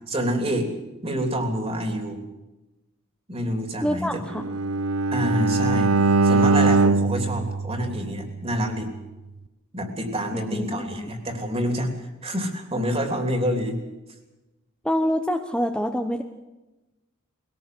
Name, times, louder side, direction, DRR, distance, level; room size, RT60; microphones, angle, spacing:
voice 1, 0.1-0.7 1.0-2.2 3.3-4.2 5.1-5.9 6.2-8.9 9.7-13.8, equal, 30° right, 5 dB, 3.3 m, -27 dB
voice 2, 3.8-4.4 10.3-11.2 14.8-16.2, equal, 5° left, 4 dB, 1.0 m, -26 dB
Bowed string instrument, 4.3-8.5, right 3 dB, 90° right, 0.8 m, -21 dB
21.0 x 17.5 x 7.8 m, 1.0 s
head